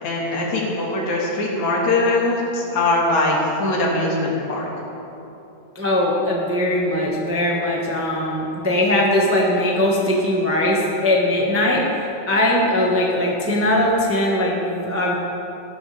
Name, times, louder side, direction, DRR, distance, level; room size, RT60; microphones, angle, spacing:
voice 1, 0.0-4.7, left 2 dB, 70° left, -3 dB, 3.4 m, -21 dB
voice 2, 5.7-11.8 12.3-15.2, left 1 dB, 10° right, -3 dB, 0.6 m, -20 dB
16.0 x 12.5 x 3.6 m, 2.9 s
omnidirectional pair, 3.4 m